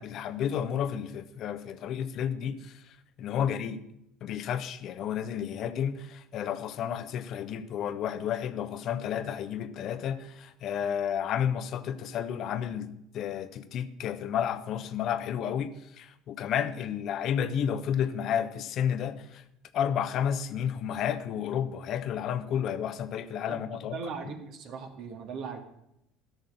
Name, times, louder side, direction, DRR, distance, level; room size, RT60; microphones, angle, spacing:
voice 1, 0.0-3.8 4.2-19.4 19.7-24.0 24.2-24.3, left 9 dB, 55° left, 1.1 m, -31 dB
voice 2, 23.9-25.6, right 5 dB, 60° right, 2.4 m, -39 dB
12.5 x 6.6 x 9.2 m
hypercardioid pair, 70°, 0 cm